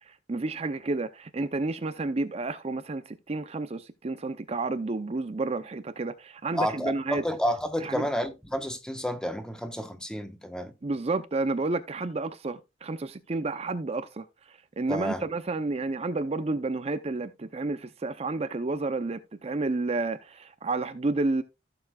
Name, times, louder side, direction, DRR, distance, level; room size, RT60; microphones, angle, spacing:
voice 1, 0.1-7.2 7.8-8.0 10.8-21.4, right 3 dB, 35° right, 0.6 m, -31 dB
voice 2, 6.5-10.7 14.9-15.2, equal, 5° left, 1.1 m, -30 dB
15.0 x 6.9 x 2.3 m
head